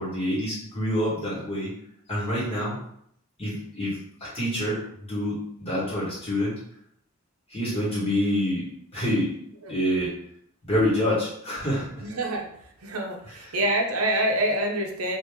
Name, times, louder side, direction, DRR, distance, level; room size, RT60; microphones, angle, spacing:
voice 1, 0.0-1.7 2.1-2.8 3.4-6.6 7.5-8.7 8.9-9.3 9.7-10.1 10.6-12.1 13.2-13.6, equal, 25° left, -7 dB, 1.5 m, -27 dB
voice 2, 12.0-12.5 12.8-15.2, right 1 dB, 85° right, 1 dB, 0.6 m, -26 dB
2.8 x 2.5 x 3.5 m, 0.69 s
head